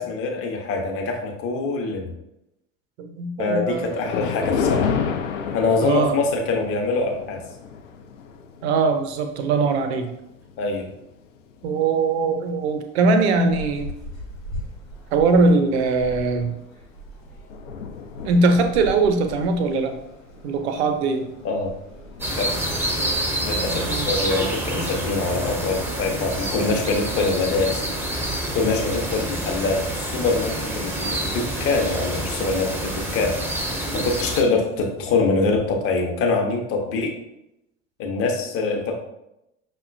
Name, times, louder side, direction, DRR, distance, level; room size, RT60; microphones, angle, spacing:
voice 1, 0.0-2.1 3.4-5.0 5.5-7.4 10.6-10.9 21.4-21.7 22.4-22.5 23.4-27.8 28.5-31.3 31.6-33.4 33.9-37.1 38.0-39.0, left 3 dB, 35° left, 2 dB, 0.7 m, -24 dB
voice 2, 3.0-4.0 5.8-6.2 8.6-10.1 11.6-13.9 15.1-16.6 18.2-20.0 20.4-21.3 23.8-24.1, right 3 dB, 55° right, 7 dB, 0.6 m, -21 dB
Thunder, 3.7-12.3 12.8-13.0 13.7-13.8 14.2-14.3 16.4-16.7 17.0-17.1 17.3-23.3, left 6 dB, 70° left, 0.5 m, -32 dB
sound 1, 13.1-28.7, right 1 dB, 90° left, 1.1 m, -42 dB
sound 2, 22.2-34.4, right 1 dB, 5° right, 0.5 m, -27 dB
5.4 x 2.2 x 2.4 m, 0.85 s
figure-of-eight pair, 70°, 39 cm